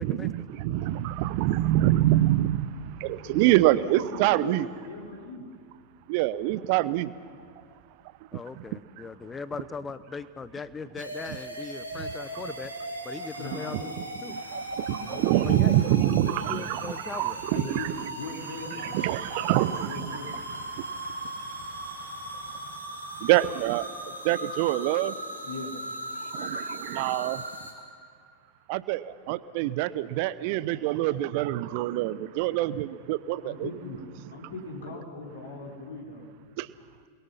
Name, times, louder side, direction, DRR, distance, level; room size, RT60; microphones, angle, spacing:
voice 1, 0.0-4.7 6.1-7.1 8.6-8.7 14.3-17.9 18.8-20.2 20.5-22.8 23.1-25.2 26.2-27.4 28.7-33.7 36.6-36.7, right 15 dB, 45° right, 17 dB, 0.8 m, -26 dB
voice 2, 3.2-3.6 3.9-5.5 13.4-14.0 15.0-15.7 17.5-19.0 19.3-20.4 21.8-22.2 25.4-25.8 32.0-32.2 33.4-36.3, left 3 dB, 65° left, -2 dB, 4.7 m, -40 dB
voice 3, 8.3-12.7 13.0-13.9 14.2-14.4 15.4-17.4, left 5 dB, 15° left, 14 dB, 1.0 m, -39 dB
sound 1, 11.0-27.7, right 1 dB, 90° right, 3.5 m, -38 dB
28.5 x 22.0 x 5.7 m, 2.4 s
figure-of-eight pair, 90°, 0 cm